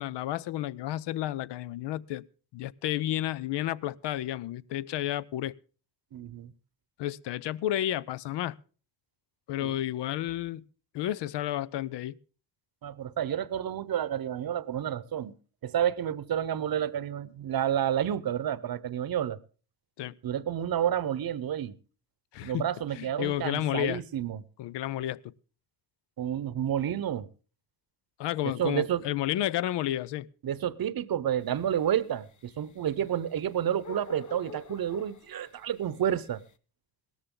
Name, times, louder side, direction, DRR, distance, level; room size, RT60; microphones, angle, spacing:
voice 1, 0.0-2.2 2.5-5.5 7.0-8.6 9.5-10.6 10.9-12.2 20.0-20.1 22.3-22.7 23.0-24.0 24.6-25.3 28.2-30.3, left 13 dB, 80° left, 0.5 m, -31 dB
voice 2, 6.1-6.5 9.6-9.8 12.8-15.3 15.6-19.4 20.2-21.7 22.4-24.4 26.2-27.3 28.4-29.0 30.4-36.4, right 10 dB, 60° right, 0.8 m, -30 dB
sound 1, 31.4-36.5, left 4 dB, 45° left, 0.8 m, -47 dB
17.0 x 13.5 x 3.7 m
cardioid pair, 65°, 41 cm